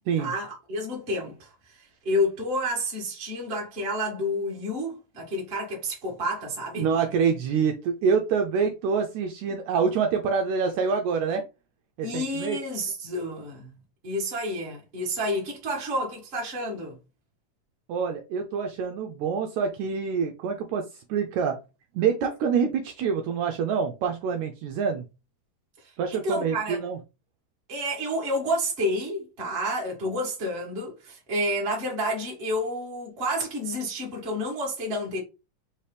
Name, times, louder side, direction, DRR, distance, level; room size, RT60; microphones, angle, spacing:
voice 1, 0.2-6.9 12.0-13.7 14.0-17.0 25.8-26.8 27.7-35.2, equal, 35° right, 1.0 m, -30 dB
voice 2, 6.8-11.4 12.0-12.6 17.9-21.6 21.9-25.0 26.0-27.0, right 6 dB, 80° right, 1.7 m, -26 dB
4.7 x 2.8 x 3.2 m
omnidirectional pair, 3.6 m